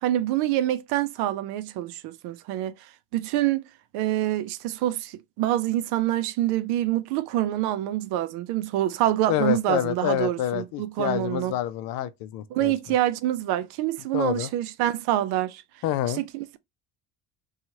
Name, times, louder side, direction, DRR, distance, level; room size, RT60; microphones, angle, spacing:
voice 1, 0.0-2.8 3.1-3.7 3.9-11.5 12.5-15.6 16.2-16.6, right 13 dB, 80° right, 0.5 m, -26 dB
voice 2, 9.3-12.7 14.1-14.5 15.8-16.2, left 12 dB, 65° left, 0.5 m, -27 dB
2.9 x 2.3 x 2.7 m
cardioid pair, 160°, 38 cm